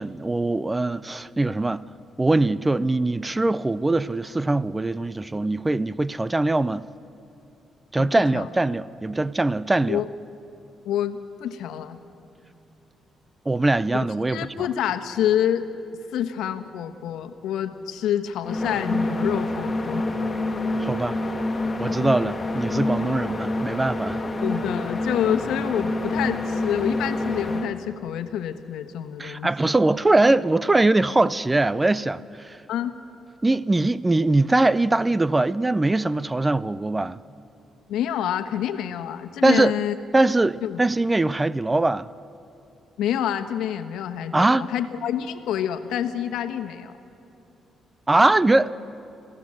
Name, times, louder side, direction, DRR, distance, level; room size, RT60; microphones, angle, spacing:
voice 1, 0.0-1.8 2.2-6.9 7.9-10.0 13.5-14.5 20.8-21.2 21.8-24.2 29.2-32.6 33.4-37.2 39.4-39.7 40.1-42.1 44.3-44.7 48.1-48.7, right 2 dB, 15° right, 0.5 m, -22 dB
voice 2, 8.0-8.5 9.9-10.1 10.8-12.0 13.9-15.7 16.1-20.1 24.4-29.7 32.7-32.9 37.9-39.9 40.6-40.8 43.0-46.9, left 10 dB, 85° left, 1.2 m, -27 dB
sound 1, 18.4-27.7, left 2 dB, 20° left, 2.1 m, -27 dB
27.5 x 15.5 x 7.7 m
cardioid pair, 90°, 0 cm